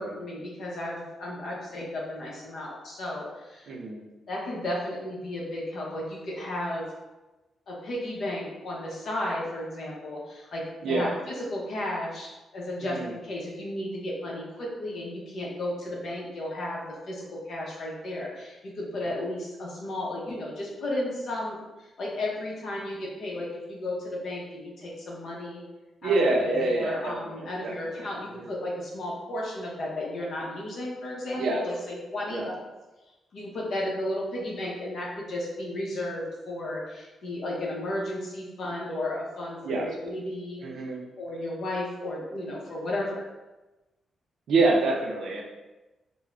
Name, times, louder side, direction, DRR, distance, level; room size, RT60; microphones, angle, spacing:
voice 1, 0.0-3.7 4.3-6.9 7.7-10.6 10.9-25.6 26.0-32.5 33.3-40.6 41.2-43.2, left 1 dB, 55° left, -3 dB, 0.7 m, -34 dB
voice 2, 3.7-4.0 10.8-11.1 12.8-13.1 26.0-28.1 28.4-28.5 31.4-31.6 32.3-32.5 39.6-39.9 40.6-41.0 44.5-45.4, right 2 dB, 65° right, -1 dB, 0.5 m, -26 dB
2.4 x 2.0 x 3.1 m, 1.1 s
wide cardioid pair, 160°, 0 cm